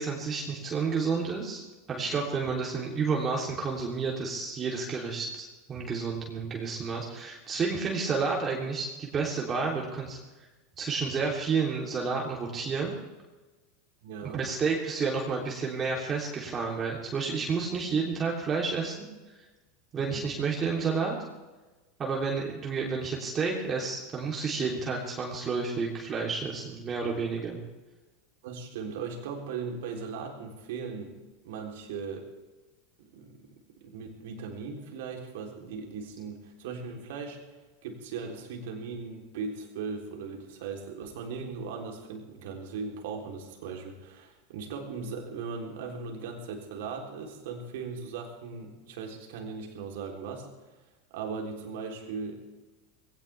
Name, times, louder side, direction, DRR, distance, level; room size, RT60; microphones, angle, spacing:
voice 1, 0.0-1.6 1.9-10.2 10.8-12.9 14.3-19.1 19.9-21.2 22.0-27.6, right 5 dB, 30° right, -2 dB, 3.3 m, -30 dB
voice 2, 14.0-14.4 19.9-20.2 28.4-31.1 31.4-32.2 33.0-33.5 33.8-37.4 37.8-50.5 51.1-52.3, right 5 dB, 70° right, 1 dB, 3.6 m, -38 dB
21.0 x 17.5 x 3.5 m, 1.2 s
hypercardioid pair, 90°, 0 cm